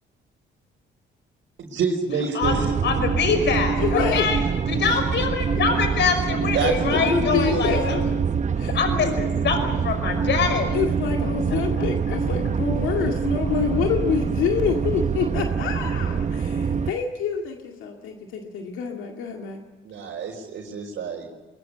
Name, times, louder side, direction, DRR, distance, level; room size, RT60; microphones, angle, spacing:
voice 1, 1.6-2.6 6.5-7.7 19.8-21.4, right 5 dB, 70° right, -3 dB, 4.2 m, -28 dB
sound 1, 2.4-16.9, right 6 dB, 35° right, 0.9 m, -25 dB
voice 2, 2.8-4.4 4.7-7.8 8.7-10.8 11.8-11.9, left 5 dB, 65° left, 7 dB, 5.6 m, -24 dB
voice 3, 3.8-4.3 4.8-5.0 6.5-8.0 8.5-8.8 10.7-19.6, left 6 dB, 90° left, 2 dB, 2.2 m, -27 dB
22.0 x 22.0 x 8.6 m, 1.2 s
cardioid pair, 90°, 20 cm